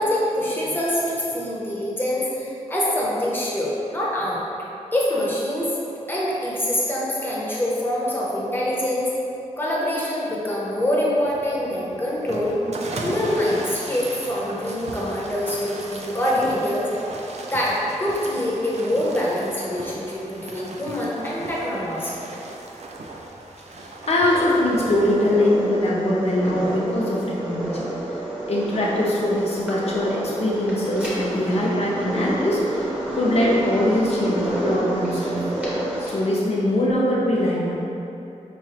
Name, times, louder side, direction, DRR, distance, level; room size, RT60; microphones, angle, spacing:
voice 1, 0.0-4.4 4.9-5.8 6.1-9.1 9.6-12.6 13.0-16.9 17.5-22.1, left 1 dB, 15° left, -6 dB, 0.8 m, -25 dB
sound 1, 11.2-25.3, right 2 dB, 55° right, 0.4 m, -37 dB
voice 2, 24.1-27.9 28.5-32.8 33.1-35.4 36.0-37.7, left 1 dB, 55° left, -4 dB, 0.7 m, -22 dB
sound 2, 24.3-36.2, right 1 dB, 10° right, 0.9 m, -29 dB
4.7 x 3.1 x 2.8 m, 2.9 s
wide cardioid pair, 130°, 13 cm